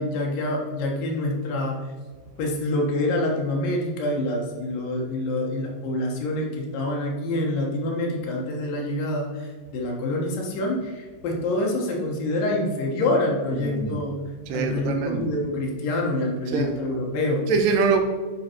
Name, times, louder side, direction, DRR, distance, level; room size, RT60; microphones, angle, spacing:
voice 1, 0.0-1.8 2.4-14.1 14.5-17.4, left 1 dB, 70° left, -1 dB, 2.9 m, -26 dB
voice 2, 13.5-14.0 14.5-15.3 16.5-16.7 17.5-18.0, right 5 dB, 75° right, 4 dB, 2.2 m, -24 dB
9.5 x 4.6 x 4.5 m, 1.4 s
omnidirectional pair, 4.3 m